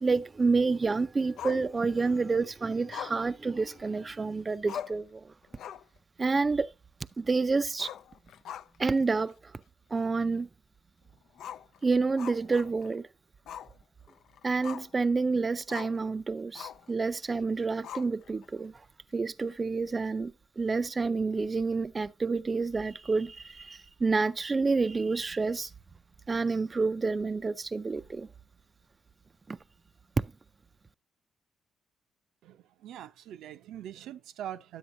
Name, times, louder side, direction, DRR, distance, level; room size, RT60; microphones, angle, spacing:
voice 1, 0.0-5.3 6.2-6.7 7.2-7.9 8.8-9.3 9.9-10.5 11.8-13.1 14.4-18.7 19.1-25.7 26.3-28.3 29.5-29.6, right 4 dB, 30° right, 0.4 m, -29 dB
Growling, 1.4-2.2 2.9-4.1 4.4-4.5 4.7-5.1 5.5-6.0 6.3-6.4 7.7-9.0 9.3-9.4 9.9-10.0 11.3-13.0 13.5-13.7 14.1-15.0 15.7-16.0 16.5-16.9 17.8-18.5, left 9 dB, 75° left, 0.4 m, -42 dB
voice 2, 32.4-34.8, right 11 dB, 85° right, 0.6 m, -43 dB
10.0 x 7.8 x 2.6 m
cardioid pair, 90°, 0 cm